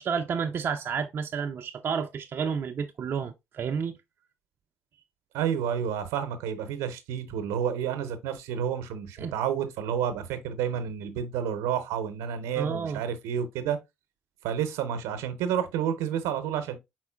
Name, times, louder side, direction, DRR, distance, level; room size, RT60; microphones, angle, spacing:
voice 1, 0.0-4.0 9.2-9.3 12.6-13.0, right 6 dB, 50° right, 0.4 m, -30 dB
voice 2, 5.3-13.8 14.4-16.8, right 8 dB, 80° right, 0.7 m, -30 dB
4.4 x 4.2 x 2.2 m
hypercardioid pair, 55°, 5 cm